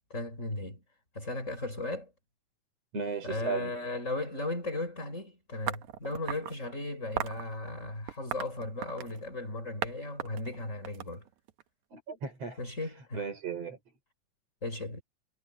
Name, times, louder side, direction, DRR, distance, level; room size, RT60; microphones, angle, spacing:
voice 1, 0.1-0.8 1.2-2.1 3.2-11.2 12.6-13.3 14.6-15.0, left 2 dB, 20° left, 5.2 m, -36 dB
voice 2, 2.9-3.8 11.9-12.6 13.1-13.8, right 5 dB, 50° right, 5.5 m, -35 dB
sound 1, 5.7-6.6 7.2-7.4 8.1-9.2 9.8-9.9 10.2-11.6, right 12 dB, 70° right, 2.2 m, -36 dB
omnidirectional pair, 3.9 m